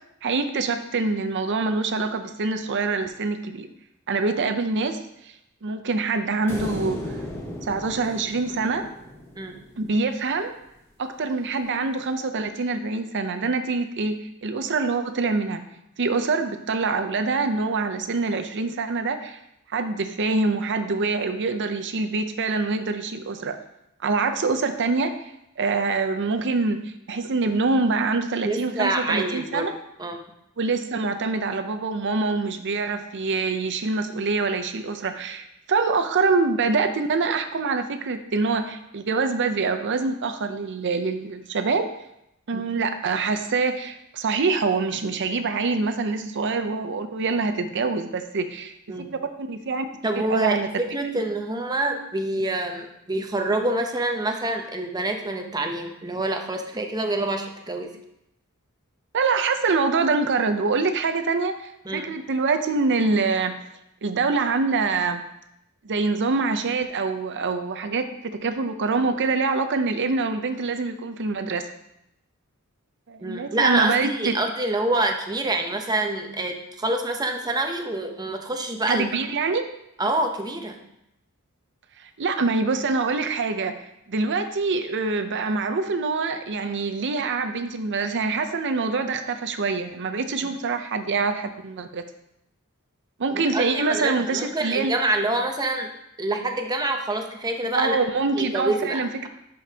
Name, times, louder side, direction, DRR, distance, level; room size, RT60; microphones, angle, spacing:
voice 1, 0.2-3.7 4.1-5.0 5.2-5.3 5.6-7.2 7.6-8.8 9.8-10.6 11.0-15.6 16.0-19.4 19.7-23.5 24.0-25.1 25.6-29.7 30.6-41.9 42.5-48.7 49.1-49.9 50.2-50.7 59.1-63.6 64.0-65.2 65.8-71.7 73.1-74.3 78.9-79.7 82.0-83.7 84.1-92.0 93.2-95.0 97.7-99.3, right 4 dB, 55° right, 8 dB, 0.6 m, -25 dB
sound 1, 6.5-9.9, left 1 dB, 10° left, 1.0 m, -35 dB
voice 2, 28.4-29.7 30.0-30.2 42.5-42.7 48.9-49.1 50.0-50.6 50.9-57.9 61.9-62.1 73.2-79.0 80.0-80.8 90.4-90.5 93.3-95.9 96.2-98.0 98.3-99.3, right 2 dB, 20° right, 4 dB, 0.7 m, -26 dB
11.0 x 5.1 x 2.8 m, 0.81 s
head